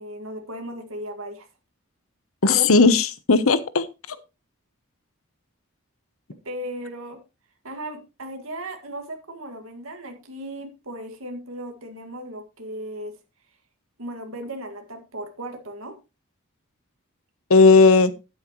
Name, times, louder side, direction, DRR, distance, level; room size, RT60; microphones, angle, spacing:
voice 1, 0.0-1.5 6.4-7.2 7.6-13.1 14.0-15.9, right 1 dB, 75° right, 5 dB, 2.1 m, -36 dB
voice 2, 2.4-3.9 17.5-18.1, left 4 dB, 75° left, 14 dB, 1.0 m, -15 dB
11.5 x 9.8 x 3.1 m, 0.27 s
head